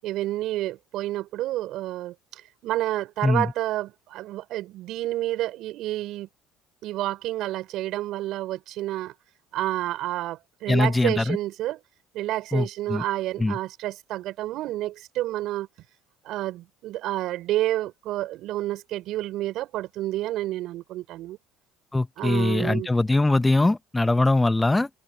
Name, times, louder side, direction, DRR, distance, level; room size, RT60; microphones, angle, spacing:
voice 1, 0.0-6.3 6.8-9.1 9.5-11.8 12.1-15.7 16.2-21.4 22.2-22.9, right 15 dB, 65° right, 5.9 m, -29 dB
voice 2, 10.7-11.4 12.5-13.0 13.4-13.6 21.9-24.9, left 2 dB, 15° left, 0.8 m, -22 dB
supercardioid pair, 85°, 0 cm